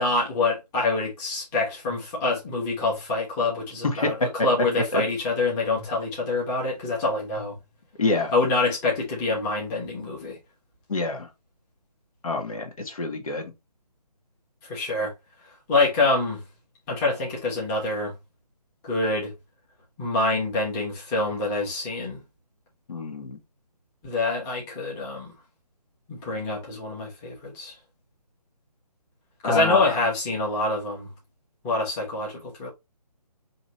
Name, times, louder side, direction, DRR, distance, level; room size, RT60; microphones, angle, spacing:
voice 1, 0.0-7.6 8.3-10.4 14.6-15.1 15.7-16.4 16.9-18.1 18.8-19.3 20.0-22.2 24.0-25.3 26.1-27.8 29.4-31.1 31.6-32.7, left 3 dB, 15° left, 1.3 m, -26 dB
voice 2, 8.0-8.3 10.9-11.3 12.2-13.5 22.9-23.4 29.4-30.0, left 3 dB, 60° left, 1.4 m, -26 dB
5.1 x 2.9 x 3.1 m
figure-of-eight pair, 150°, 21 cm